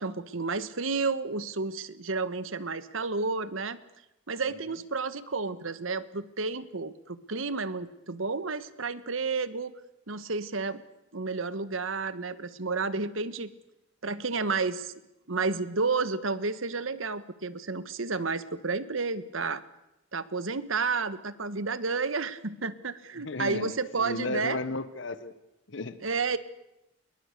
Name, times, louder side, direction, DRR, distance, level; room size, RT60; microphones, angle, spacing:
voice 1, 0.0-3.8 4.3-9.7 10.1-10.8 11.1-13.5 14.0-14.9 15.3-19.6 20.1-24.6 26.0-26.4, right 4 dB, 85° right, 14 dB, 1.3 m, -31 dB
voice 2, 23.2-25.3 25.7-26.0, left 2 dB, 65° left, 12 dB, 1.3 m, -34 dB
27.5 x 22.5 x 6.7 m, 0.90 s
head